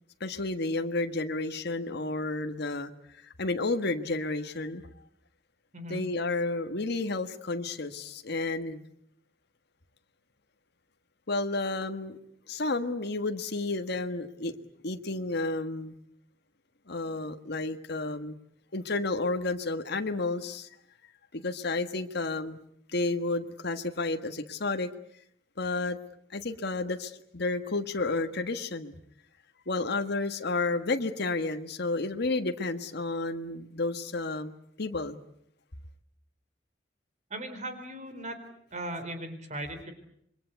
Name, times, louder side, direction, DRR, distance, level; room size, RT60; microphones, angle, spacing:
voice 1, 0.2-2.9 3.2-4.8 5.9-8.8 11.3-12.2 12.5-14.6 14.8-15.9 16.9-18.3 18.7-20.7 21.3-22.6 22.9-24.9 25.6-26.0 26.3-29.0 29.7-35.2, left 2 dB, 60° left, 6 dB, 1.5 m, -31 dB
voice 2, 37.3-38.4 38.7-39.9, right 1 dB, 40° right, 8 dB, 4.1 m, -38 dB
28.0 x 23.0 x 8.2 m, 0.69 s
head